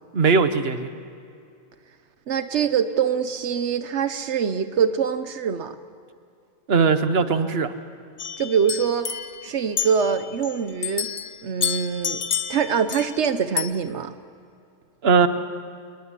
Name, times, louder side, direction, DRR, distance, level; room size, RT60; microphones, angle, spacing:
voice 1, 0.1-0.9 6.7-7.7 15.0-15.3, right 5 dB, 65° right, 10 dB, 1.4 m, -19 dB
voice 2, 2.3-5.8 8.4-9.1 9.4-11.1 11.4-14.1, right 7 dB, 85° right, 10 dB, 1.2 m, -24 dB
sound 1, 8.2-10.6 10.8-13.3 13.6-13.7, left 8 dB, 60° left, 1.2 m, -29 dB
27.5 x 20.5 x 9.8 m, 2.5 s
omnidirectional pair, 1.1 m